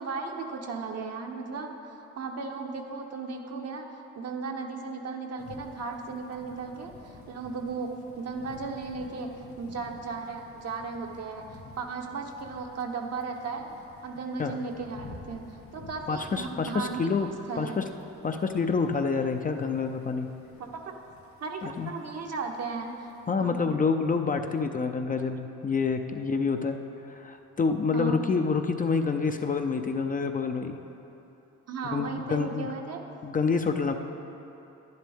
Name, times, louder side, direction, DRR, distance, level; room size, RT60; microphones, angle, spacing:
voice 1, 0.0-3.9 4.2-7.9 8.2-13.7 14.0-17.1 17.5-17.9 20.6-21.0 21.4-23.1 23.4-23.7 27.9-28.3 31.7-33.0, right 4 dB, 55° right, 3 dB, 1.0 m, -36 dB
sound 1, 5.4-23.3, left 4 dB, 65° left, 1.8 m, -51 dB
voice 2, 16.1-17.3 17.6-17.8 18.2-20.3 21.6-21.9 23.3-26.8 27.0-30.8 31.8-32.7 33.2-33.9, left 5 dB, 30° left, 5 dB, 0.5 m, -27 dB
10.5 x 10.5 x 3.6 m, 3.0 s
cardioid pair, 90°, 30 cm